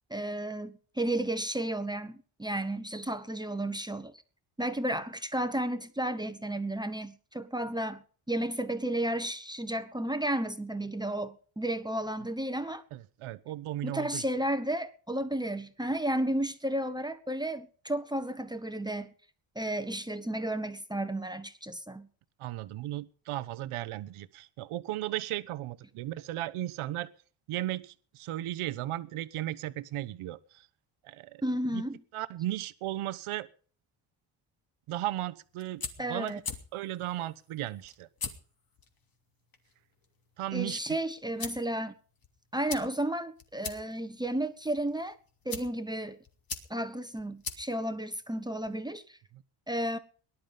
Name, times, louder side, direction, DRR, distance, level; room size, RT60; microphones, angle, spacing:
voice 1, 0.1-4.1 4.6-8.0 8.3-12.8 13.8-19.1 19.5-22.1 31.4-32.0 36.0-36.4 40.5-41.9 42.5-45.2 45.4-46.2 46.7-49.0 49.7-50.0, right 1 dB, 10° right, 1.3 m, -32 dB
voice 2, 12.9-14.2 22.4-27.1 27.5-30.7 31.0-31.4 31.7-31.8 32.1-33.5 34.9-35.8 36.1-36.4 36.7-38.1 40.4-41.0, right 14 dB, 90° right, 1.2 m, -35 dB
sound 1, 35.4-48.8, left 5 dB, 45° left, 3.0 m, -45 dB
19.5 x 11.5 x 5.2 m
cardioid pair, 105°, 49 cm